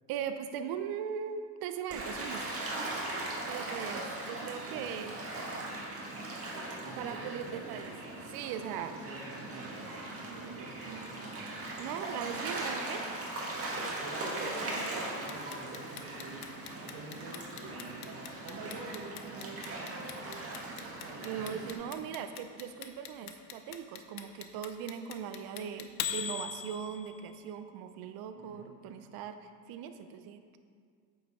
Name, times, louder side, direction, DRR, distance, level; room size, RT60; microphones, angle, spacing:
voice 1, 0.1-2.5 3.5-5.1 7.0-7.9 8.3-9.0 11.4-13.0 21.2-30.4, right 8 dB, 60° right, 8 dB, 0.6 m, -39 dB
Gull seagull / Waves surf, 1.9-21.7, right 2 dB, 35° right, 1.6 m, -39 dB
voice 2, 3.7-4.1 4.7-4.9 6.8-7.8 8.5-11.5 13.9-16.5 16.8-21.6 28.3-28.6, right 3 dB, 80° right, -8 dB, 1.7 m, -47 dB
Clock, 15.3-27.3, left 9 dB, 60° left, 0.7 m, -40 dB
8.5 x 6.1 x 3.6 m, 2.1 s
cardioid pair, 105°, 42 cm